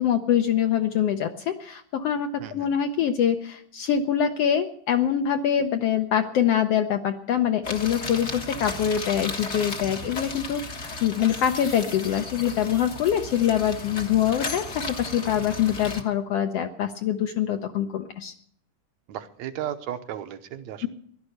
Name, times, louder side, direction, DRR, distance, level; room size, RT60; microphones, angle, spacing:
voice 1, 0.0-18.3 20.8-20.9, left 9 dB, 70° left, 6 dB, 1.5 m, -24 dB
sound 1, 7.6-16.0, left 3 dB, 45° left, 0.8 m, -35 dB
voice 2, 19.1-20.9, right 10 dB, 70° right, 9 dB, 2.1 m, -34 dB
16.0 x 11.5 x 6.6 m, 0.64 s
omnidirectional pair, 3.6 m